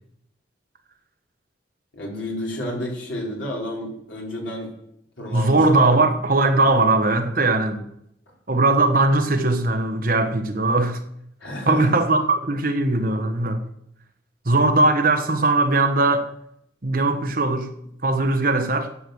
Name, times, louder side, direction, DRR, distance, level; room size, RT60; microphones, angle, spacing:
voice 1, 1.9-4.7 5.2-6.0 11.4-12.0, left 1 dB, 85° left, -2 dB, 4.1 m, -30 dB
voice 2, 5.3-7.8 8.5-11.0 11.7-13.6 14.4-16.3 16.8-17.7 18.0-18.9, right 2 dB, 50° right, 7 dB, 1.2 m, -19 dB
10.0 x 8.0 x 7.8 m, 0.76 s
head